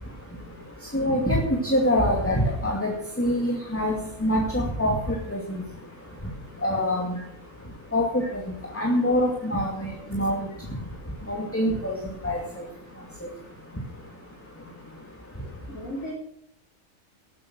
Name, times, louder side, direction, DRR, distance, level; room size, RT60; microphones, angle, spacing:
voice 1, 0.9-5.0 5.3-5.4 6.6-7.2 7.9-8.2 8.7-10.5 11.3-11.9 12.2-12.4, equal, 10° left, -2 dB, 2.4 m, -24 dB
voice 2, 15.7-16.1, equal, 80° left, -5 dB, 4.7 m, -36 dB
18.5 x 8.8 x 6.2 m, 0.72 s
omnidirectional pair, 1.4 m